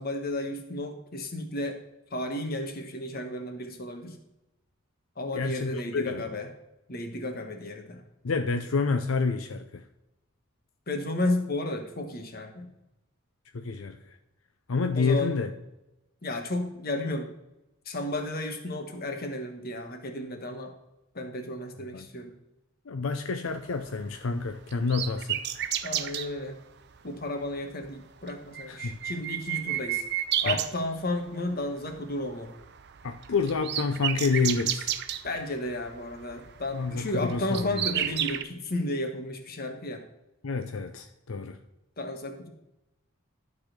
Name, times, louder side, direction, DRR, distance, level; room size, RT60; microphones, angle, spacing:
voice 1, 0.0-1.8 2.1-4.2 5.2-6.5 6.9-8.0 10.9-12.7 14.9-15.3 16.2-17.3 17.8-20.7 21.1-22.3 25.8-26.6 27.0-30.0 30.4-32.5 35.2-40.0 42.0-42.5, left 1 dB, 45° left, 5 dB, 1.4 m, -33 dB
voice 2, 5.3-6.2 8.2-9.8 13.5-14.0 14.7-15.5 21.9-22.1 22.9-25.7 28.7-29.0 30.5-30.6 33.0-34.9 36.7-37.9 40.4-41.6, left 4 dB, 80° left, 7 dB, 0.6 m, -29 dB
sound 1, 23.7-26.3 27.2-27.5 27.8-27.9 28.2-31.4 31.7-32.1 32.3-38.4, right 10 dB, 55° right, 0.5 m, -32 dB
11.5 x 4.1 x 6.6 m, 0.92 s
head